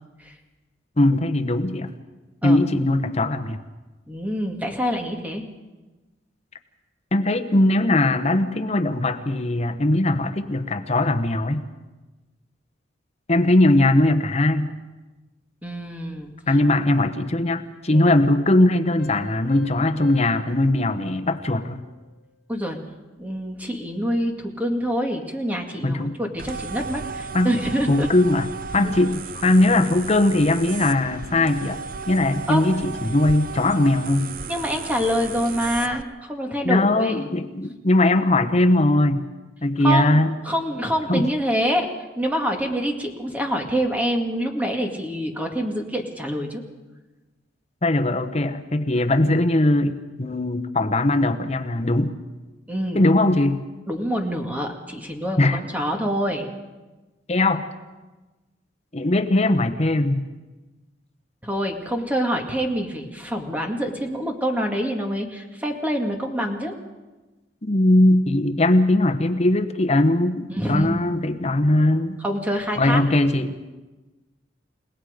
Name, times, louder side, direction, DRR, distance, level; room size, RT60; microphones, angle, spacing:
voice 1, 1.0-1.9 2.4-3.6 7.1-11.6 13.3-14.7 16.5-21.8 25.8-26.2 27.3-27.5 27.9-28.5 28.7-31.8 32.1-34.3 36.6-39.2 39.6-40.3 41.1-41.3 47.8-52.1 52.9-53.6 55.4-55.6 57.3-57.6 58.9-60.3 67.6-72.2 72.8-73.5, left 1 dB, 35° left, 7 dB, 1.1 m, -20 dB
voice 2, 4.1-5.4 15.6-16.3 17.9-18.1 22.5-22.8 23.2-28.1 28.8-28.9 32.5-32.6 34.5-37.2 39.8-40.1 40.4-41.9 42.2-46.6 52.7-53.0 53.9-56.5 61.4-66.7 70.5-71.1 72.2-73.0, equal, 10° right, 2 dB, 2.1 m, -26 dB
Piano, 19.0-22.3, left 3 dB, 55° left, 2.5 m, -46 dB
sound 1, 26.4-36.0, right 5 dB, 50° right, 0.6 m, -35 dB
30.0 x 17.5 x 5.2 m, 1.2 s
head